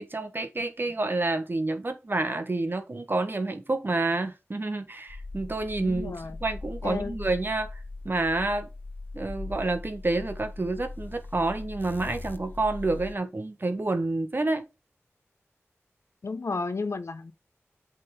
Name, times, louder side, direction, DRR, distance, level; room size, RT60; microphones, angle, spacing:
voice 1, 0.0-7.8 8.0-8.7 9.1-14.7, right 2 dB, 45° right, 1.3 m, -29 dB
sound 1, 5.1-13.2, left 2 dB, 40° left, 0.9 m, -40 dB
voice 2, 5.8-6.4 6.8-7.1 16.2-17.3, left 4 dB, 70° left, 0.6 m, -32 dB
7.8 x 3.7 x 5.0 m
cardioid pair, 45°, 5 cm